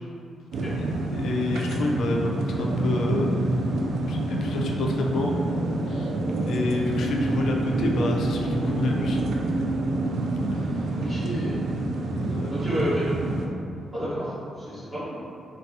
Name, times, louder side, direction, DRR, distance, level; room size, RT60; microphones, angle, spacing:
sound 1, 0.5-13.5, right 2 dB, 65° right, 0.3 m, -27 dB
voice 1, 1.1-3.3 4.1-5.4 5.9-6.1 6.5-9.2 10.5-11.0 12.2-12.5, left 2 dB, 70° left, 0 dB, 0.4 m, -28 dB
voice 2, 11.0-11.7 12.5-13.1 13.9-15.1, equal, 20° right, -11 dB, 1.0 m, -30 dB
4.0 x 2.3 x 2.6 m, 2.5 s
cardioid pair, 155°, 0 cm